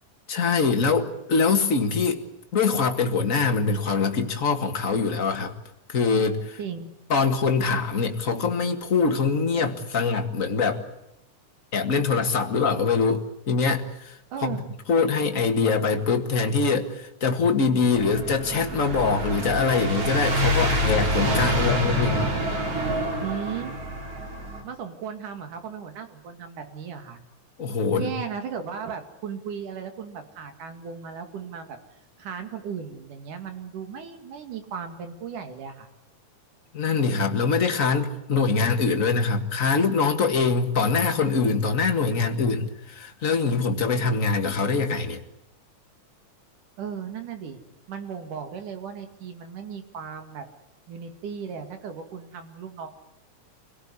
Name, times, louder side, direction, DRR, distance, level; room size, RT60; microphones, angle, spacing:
voice 1, 0.3-2.2 2.5-5.5 5.9-6.6 7.1-10.8 11.7-14.6 14.9-22.2 27.6-28.1 36.7-45.2, left 4 dB, 30° left, 5 dB, 1.7 m, -23 dB
voice 2, 6.6-6.9 14.3-14.7 23.2-23.7 24.6-27.2 27.9-31.8 32.2-35.9 46.8-47.6 47.9-50.4 50.9-52.9, right 7 dB, 85° right, 7 dB, 3.8 m, -36 dB
sound 1, 17.9-24.6, equal, 50° right, 4.9 m, -26 dB
26.0 x 17.5 x 9.7 m, 0.83 s
omnidirectional pair, 3.5 m